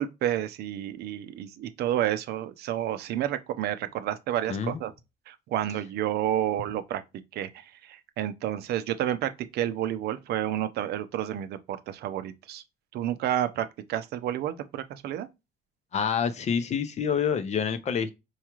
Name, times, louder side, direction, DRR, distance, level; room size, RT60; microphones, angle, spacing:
voice 1, 0.0-4.9 5.3-7.0 7.3-12.6 12.9-15.3, right 11 dB, 70° right, 0.5 m, -30 dB
voice 2, 4.5-4.8 15.9-18.1, left 7 dB, 40° left, 0.6 m, -27 dB
4.5 x 2.4 x 2.9 m
cardioid pair, 110°, 17 cm